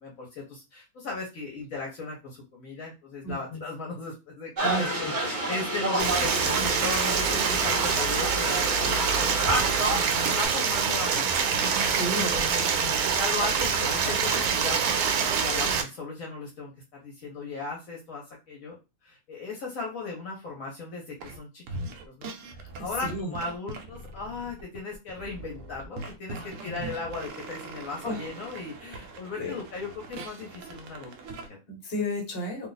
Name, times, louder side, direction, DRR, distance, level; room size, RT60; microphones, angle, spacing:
voice 1, 0.0-11.2 12.1-12.6 13.1-14.8 15.2-18.8 19.0-21.8 22.0-31.6, left 3 dB, 70° left, -1 dB, 1.1 m, -37 dB
voice 2, 3.2-3.6 4.6-5.1 6.1-6.2 9.9-10.3 11.9-12.9 22.8-23.3 26.3-26.9 28.0-28.2 29.4-29.6 31.7-32.7, left 1 dB, 45° left, 1 dB, 1.3 m, -33 dB
sound 1, 4.6-10.5, right 1 dB, 35° right, 1.2 m, -29 dB
Stream, 6.0-15.8, right 6 dB, 85° right, 1.1 m, -25 dB
sound 2, 21.2-21.4 21.7-31.5, right 3 dB, 65° right, 0.9 m, -41 dB
2.6 x 2.4 x 3.9 m, 0.27 s
omnidirectional pair, 1.5 m